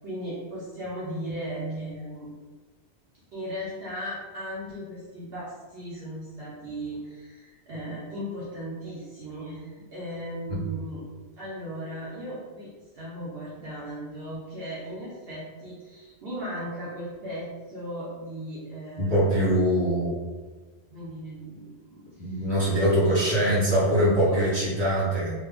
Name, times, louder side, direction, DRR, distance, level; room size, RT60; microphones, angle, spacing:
voice 1, 0.0-2.3 3.3-5.5 5.7-11.0 11.4-19.6 20.9-24.4, equal, 60° right, -7 dB, 0.9 m, -37 dB
voice 2, 19.0-20.1 22.2-25.3, equal, 25° right, -9 dB, 1.2 m, -23 dB
3.2 x 2.1 x 3.4 m, 1.3 s
omnidirectional pair, 1.2 m